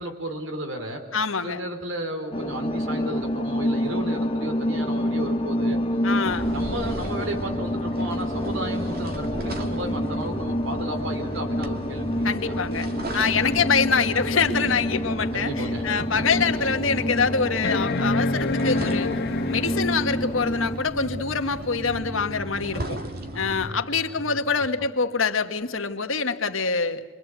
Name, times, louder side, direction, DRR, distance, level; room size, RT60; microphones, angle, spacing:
voice 1, 0.0-1.1 1.4-5.8 6.5-12.6 15.3-16.3 23.3-24.7, right 1 dB, 75° right, 5 dB, 4.3 m, -34 dB
voice 2, 1.1-1.6 6.0-6.5 12.2-12.9 13.1-19.1 19.4-23.0 23.3-27.0, left 5 dB, 85° left, 7 dB, 1.6 m, -25 dB
sound 1, 2.3-20.8, equal, 25° left, 1.1 m, -28 dB
sound 2, 6.2-23.7, equal, 50° right, 2.5 m, -35 dB
sound 3, 15.5-15.6 16.2-16.3 17.6-20.1 21.8-21.9, left 2 dB, 60° left, 1.2 m, -27 dB
28.5 x 23.5 x 8.2 m, 1.2 s
head